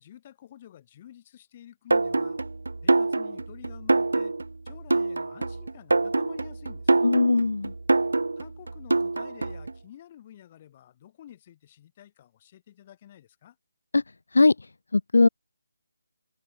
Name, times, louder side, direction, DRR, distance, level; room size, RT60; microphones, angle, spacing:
voice 1, 0.0-2.4 2.8-4.4 4.7-7.1 8.4-13.6, left 11 dB, 15° left, 6.9 m, -50 dB
sound 1, 1.9-9.7, right 3 dB, 85° right, 2.4 m, -25 dB
voice 2, 7.0-7.7 13.9-14.0 14.3-14.5 14.9-15.3, left 3 dB, 60° left, 0.4 m, -19 dB
hypercardioid pair, 180°, 0 cm